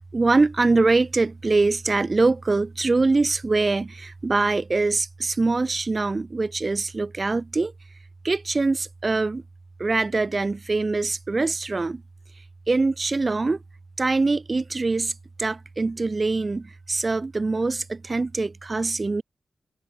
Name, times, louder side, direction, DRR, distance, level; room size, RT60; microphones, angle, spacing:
voice 1, 0.1-7.7 8.2-9.4 9.8-12.0 12.7-13.6 14.0-19.2, right 3 dB, 30° right, 0.3 m, -23 dB
wide cardioid pair, 125°, 0 cm